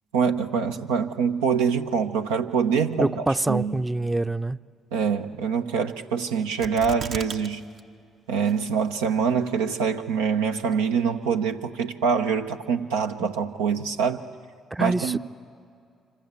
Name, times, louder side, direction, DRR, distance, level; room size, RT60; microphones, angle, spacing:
voice 1, 0.1-3.8 4.9-7.6 8.3-14.2 14.8-15.2, right 6 dB, 90° right, 1.0 m, -25 dB
voice 2, 3.0-4.6 13.2-13.3 14.7-15.2, right 2 dB, 15° right, 0.6 m, -25 dB
sound 1, 6.6-7.5 7.8-7.9 8.5-8.9 9.5-9.6, right 5 dB, 60° right, 1.2 m, -35 dB
26.0 x 25.5 x 8.2 m
hypercardioid pair, 55°, 0 cm